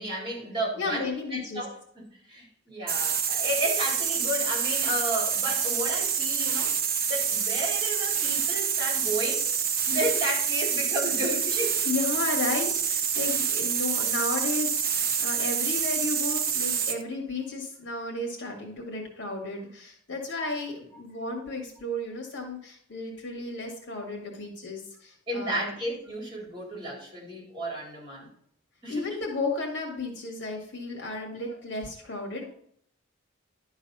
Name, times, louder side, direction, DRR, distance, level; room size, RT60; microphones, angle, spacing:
voice 1, 0.0-6.8 7.1-9.5 9.9-11.9 25.3-28.3 28.8-29.2, equal, 25° right, -3 dB, 4.1 m, -32 dB
voice 2, 0.8-1.6 11.9-25.7 28.9-32.5, left 3 dB, 60° left, 0 dB, 2.2 m, -33 dB
sound 1, 2.9-17.0, right 7 dB, 50° right, 0.9 m, -27 dB
11.5 x 4.0 x 5.5 m, 0.65 s
head